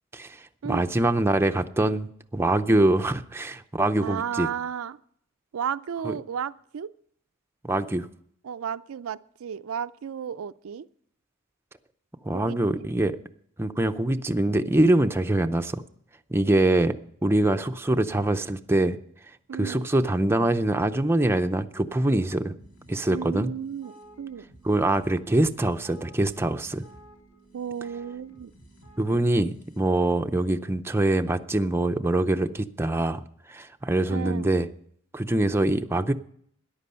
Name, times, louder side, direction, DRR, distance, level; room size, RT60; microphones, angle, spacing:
voice 1, 0.1-4.5 6.0-6.1 7.6-8.1 12.2-13.2 13.6-15.8 16.3-16.9 17.2-19.0 19.5-22.5 22.9-23.5 24.6-26.8 29.0-33.2 33.5-34.7 35.1-36.1, right 1 dB, 10° right, 7 dB, 0.5 m, -24 dB
voice 2, 4.0-5.0 5.5-6.9 8.4-10.9 12.3-12.9 19.5-19.9 23.1-24.5 27.5-28.5 34.1-34.5, right 7 dB, 80° right, 13 dB, 0.4 m, -33 dB
sound 1, 22.5-30.2, right 1 dB, 65° left, 3.6 m, -53 dB
13.5 x 10.5 x 5.6 m, 0.65 s
head